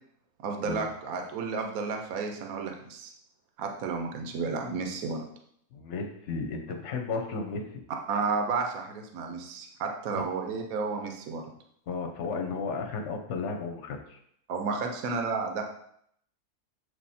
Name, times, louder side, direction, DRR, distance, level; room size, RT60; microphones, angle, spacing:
voice 1, 0.4-3.1 3.6-5.2 8.1-11.4 14.5-15.6, right 4 dB, 70° right, 3 dB, 1.2 m, -32 dB
voice 2, 5.7-7.6 10.1-10.2 11.9-14.2, left 4 dB, 55° left, 4 dB, 1.1 m, -34 dB
7.6 x 3.2 x 4.2 m, 0.69 s
omnidirectional pair, 1.6 m